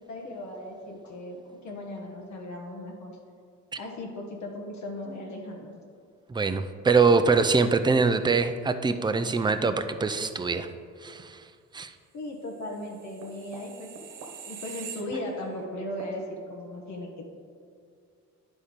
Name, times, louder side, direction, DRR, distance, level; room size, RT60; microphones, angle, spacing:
voice 1, 0.1-3.2 3.8-5.7 12.1-14.2 14.5-17.3, left 1 dB, 65° left, -1 dB, 1.2 m, -37 dB
voice 2, 6.3-10.7 11.0-11.4 11.7-11.9, right 4 dB, 15° right, 9 dB, 0.4 m, -23 dB
sound 1, 12.7-15.6 16.0-16.2, right 6 dB, 85° right, 1.1 m, -43 dB
9.7 x 4.3 x 5.1 m, 2.2 s
cardioid pair, 90°, 30 cm